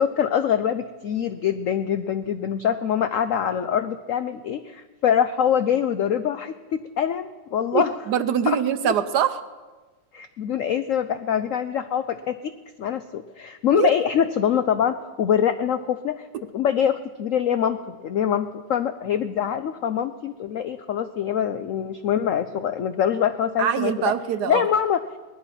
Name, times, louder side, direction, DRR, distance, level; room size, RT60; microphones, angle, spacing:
voice 1, 0.0-7.9 8.5-8.9 10.1-12.5 12.8-16.3 16.5-24.1 24.5-25.0, left 8 dB, 80° left, 10 dB, 0.7 m, -24 dB
voice 2, 7.7-9.4 13.7-13.9 23.6-24.7, right 9 dB, 70° right, 12 dB, 1.1 m, -23 dB
19.5 x 11.0 x 5.7 m, 1.3 s
omnidirectional pair, 2.0 m